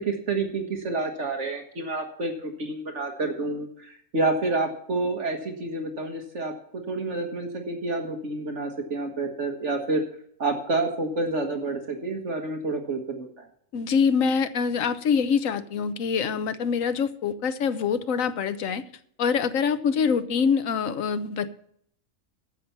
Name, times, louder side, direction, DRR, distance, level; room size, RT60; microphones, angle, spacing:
voice 1, 0.0-10.0 10.4-13.5, right 3 dB, 60° right, 4 dB, 1.8 m, -29 dB
voice 2, 13.7-18.8 19.2-21.5, left 6 dB, 85° left, 12 dB, 1.2 m, -25 dB
14.0 x 5.9 x 6.9 m, 0.65 s
omnidirectional pair, 1.4 m